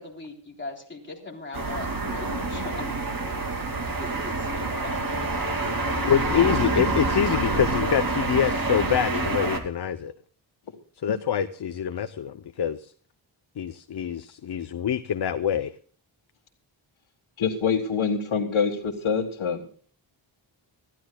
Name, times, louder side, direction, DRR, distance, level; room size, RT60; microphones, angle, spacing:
voice 1, 0.0-3.0 4.0-5.1, left 3 dB, 25° left, -1 dB, 3.6 m, -39 dB
sound 1, 1.5-9.6, right 2 dB, 45° right, 2.4 m, -27 dB
voice 2, 6.1-10.1 11.0-12.9 13.6-15.7, left 8 dB, 55° left, 10 dB, 0.7 m, -25 dB
voice 3, 17.4-19.7, left 6 dB, 80° left, -1 dB, 1.9 m, -25 dB
26.0 x 14.0 x 2.3 m, 0.43 s
wide cardioid pair, 155°, 47 cm